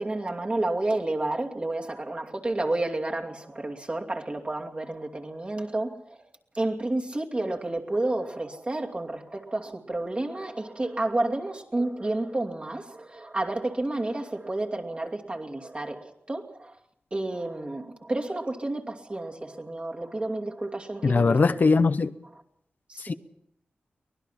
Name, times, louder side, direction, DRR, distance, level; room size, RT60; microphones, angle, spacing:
voice 1, 0.0-6.3 6.5-16.8 17.1-21.3 22.9-23.1, right 2 dB, 30° right, 2.6 m, -30 dB
voice 2, 21.0-22.1 23.0-23.1, left 4 dB, 55° left, 0.8 m, -21 dB
24.0 x 20.0 x 5.8 m
wide cardioid pair, 90°, 4 cm